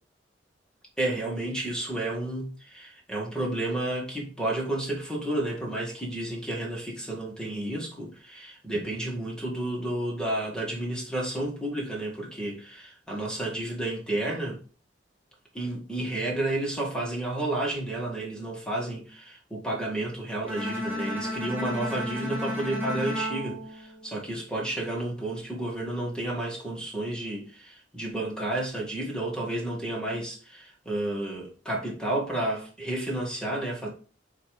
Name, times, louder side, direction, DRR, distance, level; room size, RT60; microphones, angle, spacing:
voice 1, 1.0-14.6 15.5-33.9, right 1 dB, 5° left, 1.9 m, -31 dB
Bowed string instrument, 20.5-24.6, left 1 dB, 10° right, 1.7 m, -33 dB
8.5 x 3.0 x 5.0 m
head